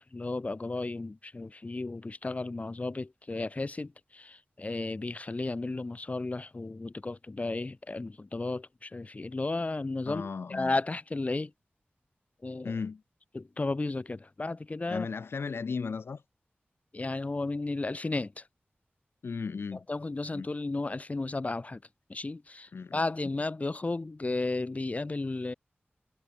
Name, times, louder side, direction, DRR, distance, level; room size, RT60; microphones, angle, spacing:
voice 1, 0.0-11.5 12.4-12.7 13.3-15.1 16.9-18.4 19.9-21.8 22.1-25.5, left 2 dB, 35° left, 0.7 m, -34 dB
voice 2, 10.1-10.7 12.6-13.0 14.9-16.2 19.2-19.9 20.3-20.5 22.7-23.0, left 5 dB, 70° left, 0.5 m, -35 dB
wide cardioid pair, 85°, 4 cm